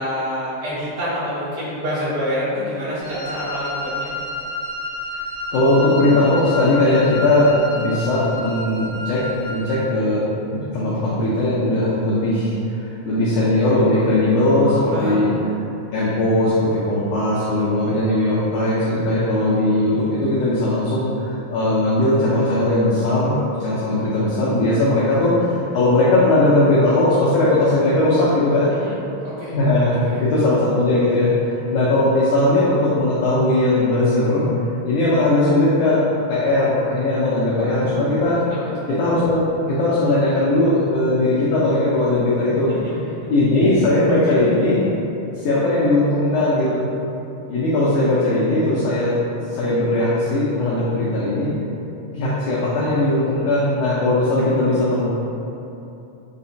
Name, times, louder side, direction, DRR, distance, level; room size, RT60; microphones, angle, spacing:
voice 1, 0.0-4.1 14.9-15.2 28.7-28.9 29.2-29.6 30.0-30.3 37.5-38.1 38.5-38.9 42.5-43.2 44.1-44.5, equal, 60° right, -13 dB, 1.0 m, -28 dB
Wind instrument woodwind instrument, 3.0-9.7, left 1 dB, 65° left, 2.0 m, -31 dB
voice 2, 5.5-9.2 9.5-12.5 12.8-15.3 15.9-28.7 29.5-34.5 34.8-36.0 36.3-38.4 38.9-42.7 43.3-44.8 45.4-46.8 47.5-49.1 49.5-51.5 52.1-55.1, left 1 dB, 80° left, -9 dB, 1.9 m, -19 dB
5.6 x 2.1 x 2.6 m, 2.9 s
omnidirectional pair, 3.9 m